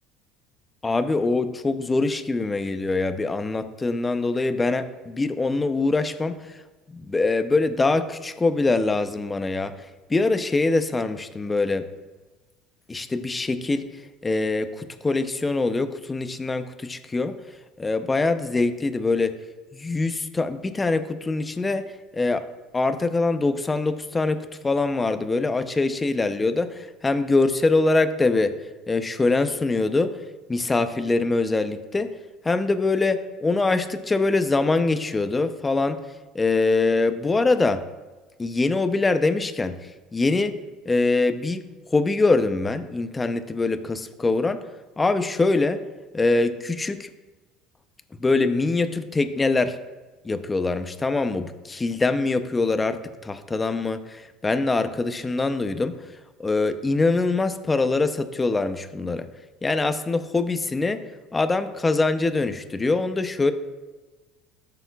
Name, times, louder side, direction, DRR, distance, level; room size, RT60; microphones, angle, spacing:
voice 1, 0.8-6.4 6.9-9.7 10.1-11.8 12.9-13.9 14.2-17.3 17.8-19.3 19.7-21.8 22.1-22.4 22.7-28.5 28.9-30.1 30.5-32.1 32.4-36.0 36.3-37.8 38.4-39.7 40.1-40.6 40.9-41.6 41.9-44.6 45.0-45.8 46.1-47.1 48.2-49.8 50.2-55.9 56.4-59.3 59.6-61.0 61.3-63.5, left 3 dB, 15° left, 9 dB, 0.6 m, -23 dB
13.0 x 6.8 x 2.4 m, 1.2 s
supercardioid pair, 105°, 0 cm